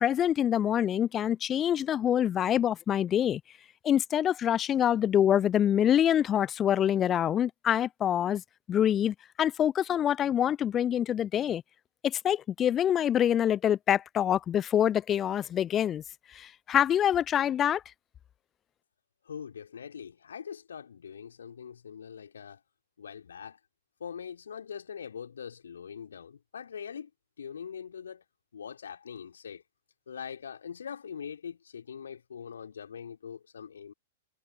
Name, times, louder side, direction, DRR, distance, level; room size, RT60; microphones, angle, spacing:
voice 1, 0.0-3.4 3.8-8.4 8.7-11.6 12.0-16.0 16.4-17.8, left 10 dB, 20° left, 0.9 m, -25 dB
voice 2, 19.3-22.6 23.0-23.6 24.0-27.1 27.4-28.2 28.5-29.6 30.1-33.9, left 7 dB, 65° left, 4.2 m, -42 dB
figure-of-eight pair, 105°, 0 cm